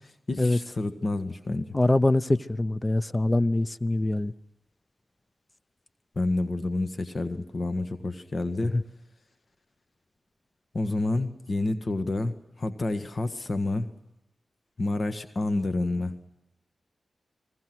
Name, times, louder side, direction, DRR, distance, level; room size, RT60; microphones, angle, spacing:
voice 1, 0.3-1.7 6.1-8.8 10.7-13.9 14.8-16.2, left 2 dB, 50° left, 1.7 m, -29 dB
voice 2, 1.7-4.3 8.6-8.8, left 2 dB, 25° left, 0.8 m, -24 dB
29.5 x 20.5 x 6.2 m
cardioid pair, 50°, 0 cm